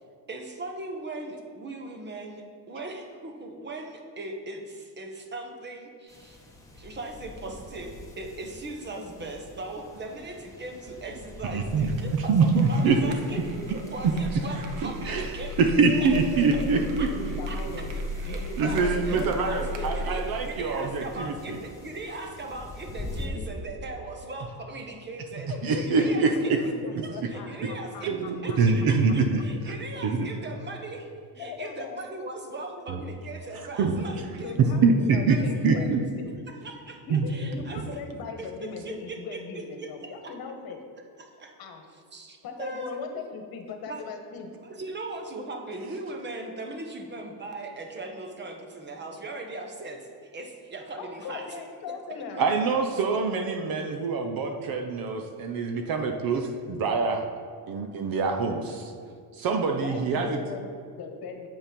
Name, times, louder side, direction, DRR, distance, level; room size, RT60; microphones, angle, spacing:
voice 1, 0.3-6.4 6.7-15.6 16.0-16.1 17.0-17.1 17.5-17.6 18.2-26.7 27.0-34.8 35.3-36.0 36.5-37.0 37.3-38.0 38.4-40.3 41.2-41.5 42.1-43.0 43.8-44.0 44.6-51.6 51.9-52.0 52.3-52.4 53.1-53.2, right 2 dB, 25° right, 3 dB, 1.1 m, -39 dB
sound 1, 6.1-23.3, left 2 dB, 5° left, 1.4 m, -45 dB
voice 2, 11.5-13.0 14.3-14.4 14.8-17.4 18.6-21.6 25.6-26.6 28.0-29.8 30.0-30.3 32.9-33.0 33.8-34.0 34.8-35.4 35.6-36.0 37.1-37.3 52.4-57.2 57.7-58.9 59.3-60.4, right 4 dB, 50° right, 4 dB, 0.8 m, -25 dB
sound 2, 12.5-20.4, equal, 70° right, 1.2 m, -35 dB
voice 3, 12.8-14.8 15.8-18.0 18.2-20.1 21.0-21.1 23.2-23.5 25.5-28.6 31.3-32.0 32.8-32.9 34.2-36.3 37.0-40.9 41.6-41.8 42.4-44.5 51.0-52.4 59.8-61.5, left 4 dB, 50° left, 4 dB, 1.4 m, -39 dB
7.7 x 7.1 x 5.2 m, 2.2 s
cardioid pair, 135°, 45 cm